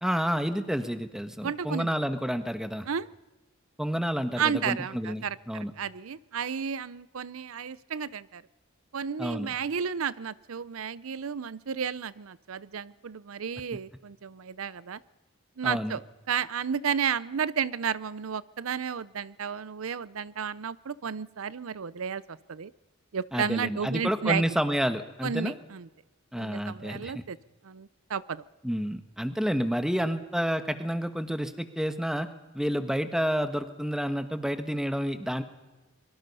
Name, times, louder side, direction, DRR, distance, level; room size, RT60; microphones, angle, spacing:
voice 1, 0.0-2.9 3.8-5.7 9.2-9.5 15.6-16.0 23.3-25.5 26.3-27.2 28.6-32.3 32.5-35.4, equal, 5° right, 9 dB, 1.3 m, -29 dB
voice 2, 1.4-2.0 2.9-3.1 4.4-8.4 8.9-15.0 15.6-16.0 16.3-22.7 23.1-24.4 25.2-25.9 26.4-27.4 27.6-28.4, right 7 dB, 85° right, 19 dB, 0.6 m, -32 dB
24.0 x 22.5 x 5.5 m, 1.2 s
head